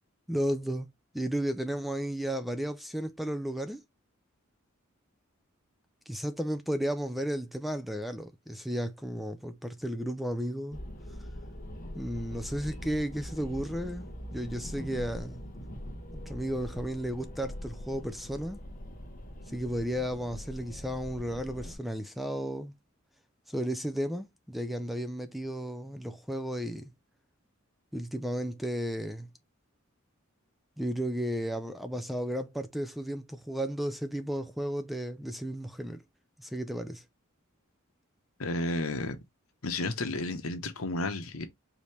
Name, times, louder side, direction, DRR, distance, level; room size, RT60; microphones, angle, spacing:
voice 1, 0.3-0.9 1.1-3.8 6.1-10.8 11.9-15.4 16.3-18.6 19.5-22.7 23.5-26.9 27.9-29.3 30.8-36.0 36.4-37.0, equal, ahead, 0.4 m, -33 dB
sound 1, 10.7-21.8, equal, 40° left, 1.2 m, -42 dB
voice 2, 38.4-39.2 39.6-41.5, left 2 dB, 85° left, 1.0 m, -32 dB
5.0 x 2.8 x 3.1 m
head